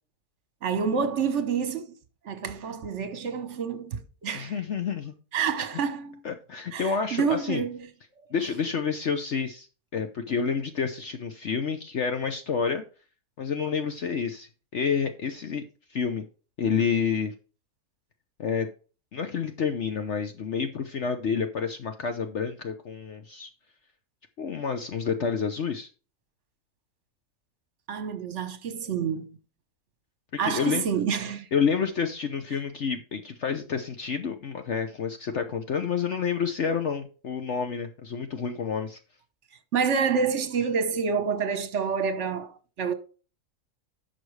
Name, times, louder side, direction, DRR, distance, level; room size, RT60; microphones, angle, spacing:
voice 1, 0.6-1.9 2.2-4.5 5.3-6.2 6.7-7.9 27.9-29.3 30.4-31.5 39.7-42.9, right 6 dB, 50° right, 1.3 m, -28 dB
voice 2, 4.3-5.1 6.2-7.6 8.3-9.7 9.9-12.8 13.4-15.6 15.9-16.2 16.6-17.3 18.4-18.7 19.1-23.5 24.4-25.9 30.4-30.8 31.5-39.0, left 6 dB, 55° left, 1.0 m, -29 dB
11.0 x 6.3 x 3.3 m
omnidirectional pair, 1.6 m